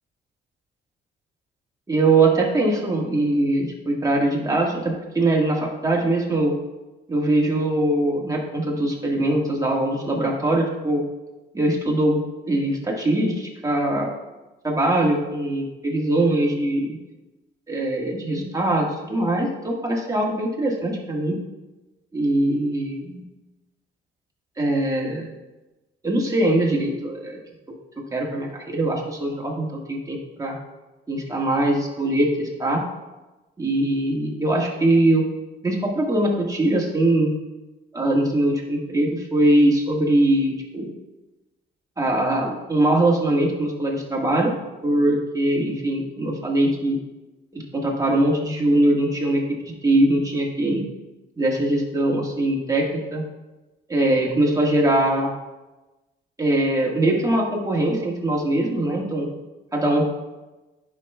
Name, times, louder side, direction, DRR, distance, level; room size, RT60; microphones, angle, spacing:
voice 1, 1.9-6.5 7.1-11.0 11.5-14.1 14.6-17.0 17.7-21.4 22.1-23.2 24.6-25.3 26.0-27.4 28.1-30.6 31.1-32.8 33.6-35.2 35.6-37.3 37.9-40.9 42.0-44.5 44.8-47.0 47.5-49.4 49.8-50.8 51.4-53.2 53.9-55.3 56.4-59.3 59.7-60.0, right 1 dB, 15° right, -2 dB, 1.7 m, -22 dB
10.5 x 5.5 x 2.3 m, 1.1 s
cardioid pair, 90°, 20 cm